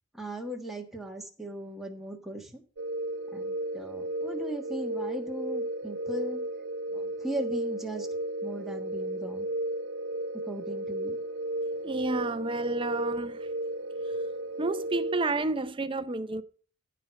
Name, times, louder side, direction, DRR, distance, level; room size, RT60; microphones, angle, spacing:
voice 1, 0.1-2.6 3.3-6.4 6.9-8.1 8.4-9.5 10.4-11.2, equal, ahead, 1.4 m, -38 dB
sound 1, 2.8-15.4, right 1 dB, 65° right, 0.7 m, -34 dB
voice 2, 11.8-13.5 14.6-16.4, right 2 dB, 25° right, 0.5 m, -30 dB
15.0 x 5.0 x 6.3 m
head